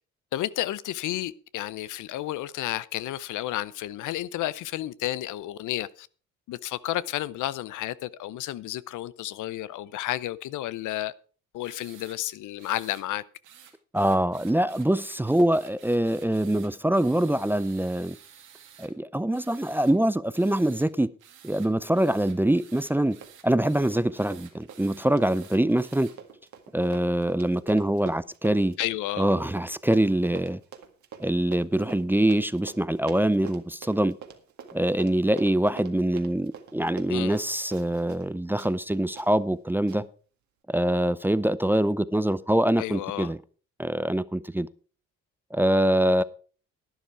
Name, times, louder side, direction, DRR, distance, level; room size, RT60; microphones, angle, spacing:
voice 1, 0.3-6.1 6.5-11.1 11.5-13.2 28.8-29.3 37.1-37.4 42.8-43.3, left 14 dB, 80° left, 0.7 m, -31 dB
sound 1, 11.6-12.2 12.6-13.0 13.4-18.9 19.3-19.9 20.3-20.9 21.2-26.1, right 9 dB, 85° right, 2.5 m, -52 dB
voice 2, 13.9-18.2 18.8-21.1 21.4-23.2 23.4-26.1 26.7-28.8 29.2-30.6 31.2-34.2 34.7-40.1 40.7-43.4 43.8-44.7 45.5-46.2, right 1 dB, 5° right, 0.5 m, -24 dB
Run, 22.7-23.0 23.2-38.3 38.6-38.7 39.2-39.3 39.9-40.0, right 7 dB, 70° right, 1.9 m, -46 dB
11.5 x 10.0 x 4.5 m
cardioid pair, 90°, 30 cm